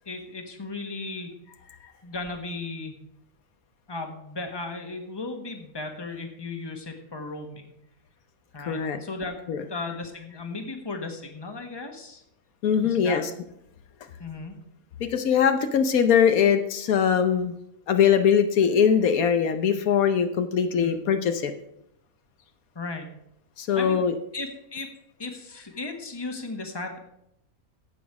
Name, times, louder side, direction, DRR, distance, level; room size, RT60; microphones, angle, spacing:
voice 1, 0.0-1.3 2.0-2.9 3.9-7.7 8.5-9.3 9.7-12.2 12.8-13.2 14.2-14.5 20.8-21.0 22.7-23.1 23.8-24.0 24.3-24.9 25.2-27.0, left 3 dB, 20° left, 4 dB, 1.4 m, -35 dB
voice 2, 8.6-9.0 9.5-9.6 12.6-13.3 15.0-17.5 17.9-21.5 23.6-24.1, left 7 dB, 80° left, 8 dB, 1.3 m, -21 dB
15.5 x 6.1 x 4.8 m, 0.77 s
omnidirectional pair, 1.5 m